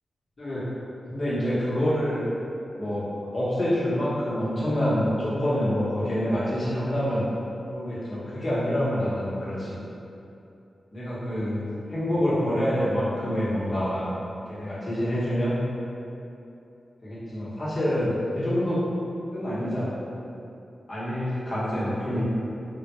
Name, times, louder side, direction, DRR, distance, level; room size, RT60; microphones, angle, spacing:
voice 1, 1.1-2.3 2.8-3.1 3.3-7.2 7.7-9.8 10.9-14.1 14.5-15.6 17.0-18.8 19.3-19.9 20.9-22.2, equal, 40° left, -10 dB, 1.1 m, -26 dB
3.7 x 2.3 x 3.0 m, 2.8 s
wide cardioid pair, 80°, 0 cm